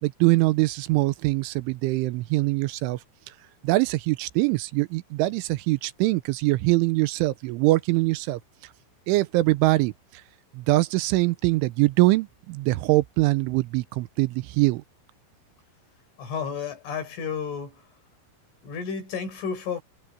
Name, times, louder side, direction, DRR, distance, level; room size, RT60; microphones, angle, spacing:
voice 1, 0.0-3.0 3.6-8.4 9.1-9.9 10.5-14.8, right 20 dB, 85° right, 3.1 m, -23 dB
voice 2, 16.2-17.9 18.6-19.8, left 6 dB, 75° left, 8.4 m, -32 dB
omnidirectional pair, 5.6 m